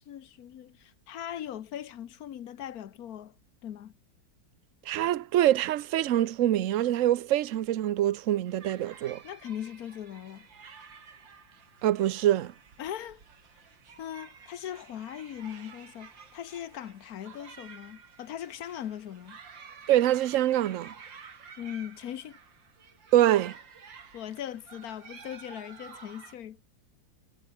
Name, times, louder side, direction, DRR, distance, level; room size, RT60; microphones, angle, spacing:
voice 1, 0.0-3.3 3.6-3.9 9.2-10.5 12.8-13.2 14.0-19.4 21.6-22.4 24.1-26.6, left 10 dB, 55° left, 1.3 m, -40 dB
voice 2, 4.9-9.2 11.8-12.5 19.9-20.9 23.1-23.5, right 13 dB, 60° right, 0.8 m, -25 dB
sound 1, 8.5-26.3, right 6 dB, 75° right, 3.1 m, -51 dB
omnidirectional pair, 2.1 m